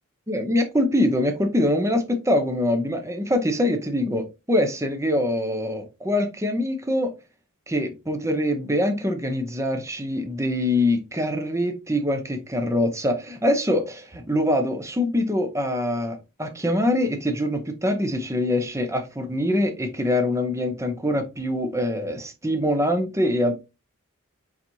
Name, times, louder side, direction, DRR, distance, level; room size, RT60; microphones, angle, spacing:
voice 1, 0.3-7.1 7.7-23.5, left 1 dB, 15° right, 0.8 m, -24 dB
4.5 x 4.1 x 2.8 m
head